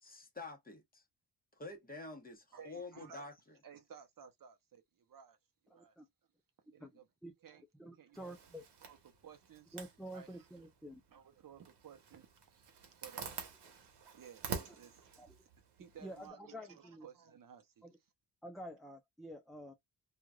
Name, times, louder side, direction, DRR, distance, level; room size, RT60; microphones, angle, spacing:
voice 1, 0.0-1.0 1.5-3.6, left 3 dB, 20° left, 1.1 m, -48 dB
voice 2, 2.5-3.3 3.6-5.4 5.6-6.0 6.7-7.0 7.4-7.6 8.0-8.4 8.8-9.8 10.1-10.5 11.1-15.1 15.8-17.9, right 7 dB, 50° right, 0.7 m, -57 dB
voice 3, 5.7-6.1 6.8-6.9 7.2-7.3 7.8-8.6 9.7-11.0 14.7-14.8 15.2-15.4 16.0-17.1 17.8-18.0 18.4-19.7, equal, ahead, 0.4 m, -49 dB
Zipper (clothing), 8.1-16.3, right 6 dB, 75° right, 1.1 m, -49 dB
3.1 x 2.4 x 2.3 m
cardioid pair, 105°, 42 cm